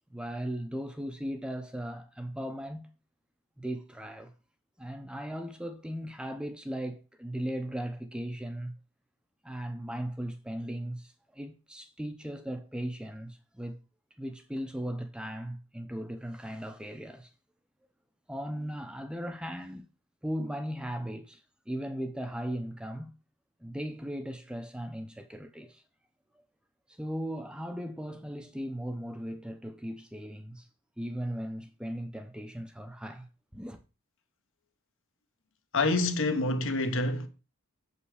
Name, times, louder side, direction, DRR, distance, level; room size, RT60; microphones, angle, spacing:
voice 1, 0.1-2.9 3.6-4.3 4.8-8.7 9.4-13.8 14.2-17.3 18.3-19.9 20.2-23.1 23.6-25.8 26.9-30.7 31.0-33.3 33.5-33.8, equal, 5° right, 0.6 m, -37 dB
voice 2, 35.7-37.3, left 2 dB, 60° left, 1.1 m, -27 dB
7.4 x 5.5 x 4.9 m
head